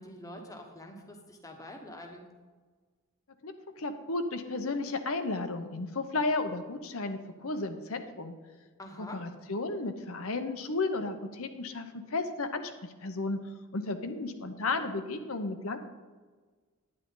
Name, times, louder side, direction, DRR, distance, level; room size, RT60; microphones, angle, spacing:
voice 1, 0.0-2.2 8.8-9.2, left 1 dB, 15° left, 3 dB, 1.2 m, -45 dB
voice 2, 3.4-8.3 9.0-13.4 13.7-15.8, left 3 dB, 65° left, 8 dB, 0.9 m, -33 dB
10.0 x 9.7 x 3.9 m, 1.4 s
head